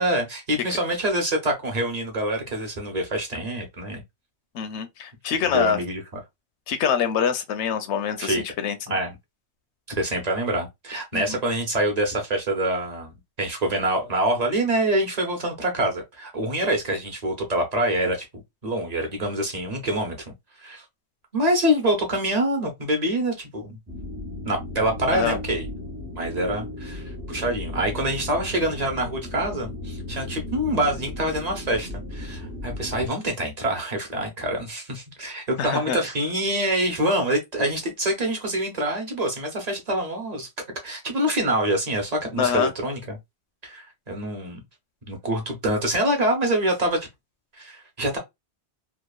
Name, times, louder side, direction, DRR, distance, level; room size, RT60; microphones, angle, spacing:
voice 1, 0.0-4.0 5.5-6.0 8.2-8.4 8.9-9.2 10.0-18.2 18.6-20.3 20.6-20.8 21.3-23.8 24.4-25.7 26.1-40.5 40.8-43.2 43.6-44.6 45.1-47.0 47.6-48.2, right 1 dB, 40° right, 0.9 m, -25 dB
voice 2, 4.5-5.8 6.7-9.0 11.1-11.4 25.1-25.4 35.6-36.0 42.4-42.7, left 7 dB, 80° left, 0.9 m, -25 dB
sound 1, 23.9-33.1, left 2 dB, 20° right, 0.4 m, -35 dB
2.9 x 2.3 x 2.3 m
omnidirectional pair, 1.1 m